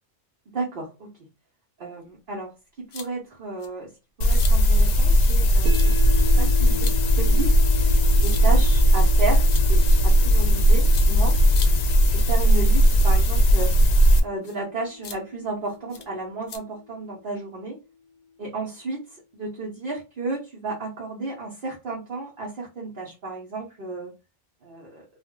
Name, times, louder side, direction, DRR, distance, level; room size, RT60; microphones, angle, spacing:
voice 1, 0.5-1.1 1.8-2.5 2.8-3.9 4.2-7.5 8.2-11.4 12.1-13.7 14.2-17.8 18.4-24.1 24.6-25.0, right 3 dB, 55° right, -3 dB, 1.0 m, -33 dB
sound 1, 2.9-3.1 3.6-3.7 4.3-4.5 5.2-5.4 5.7-5.9 6.8-7.0 8.2-8.4 9.5-10.0 10.9-11.1 11.5-11.7 12.9-13.1 13.5-13.7 14.4-14.6 15.0-15.2 15.9-16.0 16.5-16.6, left 6 dB, 60° left, 0.7 m, -38 dB
sound 2, 4.2-14.2, equal, 85° left, 0.9 m, -17 dB
sound 3, 5.7-17.8, left 4 dB, 85° right, 1.0 m, -38 dB
2.5 x 2.0 x 3.6 m, 0.28 s
omnidirectional pair, 1.2 m